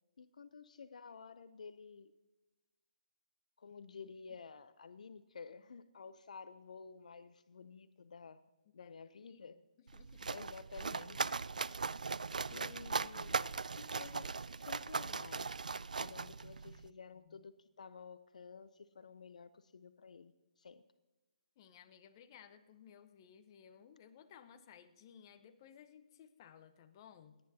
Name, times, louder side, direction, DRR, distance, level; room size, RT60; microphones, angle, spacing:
voice 1, 0.2-2.1 3.6-8.4 8.7-9.6 10.3-11.3 12.4-15.5 15.9-20.8, left 5 dB, 70° left, 13 dB, 0.6 m, -52 dB
voice 2, 9.9-10.3 16.2-16.9 17.3-17.4 21.6-27.4, left 8 dB, 35° left, 10 dB, 0.9 m, -59 dB
sound 1, 9.9-16.9, right 4 dB, 85° right, 0.3 m, -39 dB
28.0 x 9.6 x 2.8 m, 1.1 s
hypercardioid pair, 150°, 4 cm